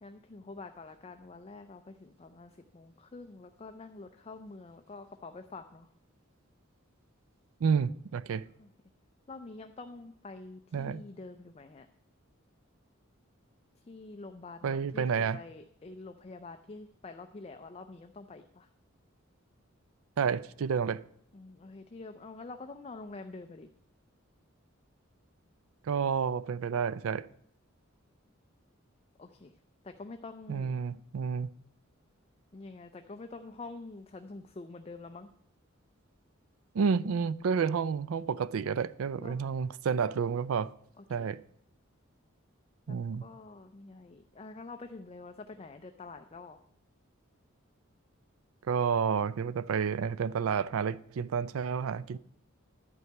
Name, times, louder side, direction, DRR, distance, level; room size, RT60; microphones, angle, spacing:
voice 1, 0.0-5.9 8.6-8.7 9.3-11.9 13.8-18.7 21.3-23.7 29.2-29.6 29.8-30.8 32.5-35.3 39.2-39.4 41.0-41.3 42.9-46.6, left 3 dB, 30° left, 0.5 m, -47 dB
voice 2, 7.6-8.5 10.7-11.0 14.6-15.4 20.2-21.0 25.9-27.3 30.5-31.5 36.7-40.7 41.1-41.4 42.9-43.2 48.6-52.2, right 6 dB, 85° right, 0.4 m, -30 dB
11.0 x 4.6 x 7.9 m
head